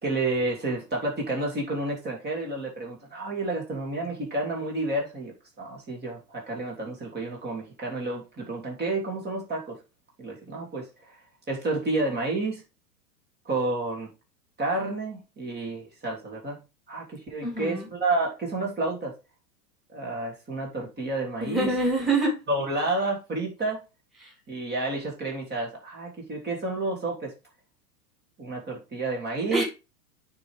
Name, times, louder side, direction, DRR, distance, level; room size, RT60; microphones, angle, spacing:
voice 1, 0.0-9.8 10.2-11.2 11.5-12.6 13.4-14.1 14.6-16.6 16.9-19.1 19.9-21.8 22.5-23.8 24.5-27.3 28.4-29.6, right 2 dB, 20° right, -1 dB, 3.0 m, -30 dB
voice 2, 17.4-17.9 21.4-22.4 24.2-24.3 29.5-29.6, right 2 dB, ahead, -2 dB, 2.8 m, -25 dB
9.1 x 3.7 x 4.9 m, 0.28 s
hypercardioid pair, 105°, 48 cm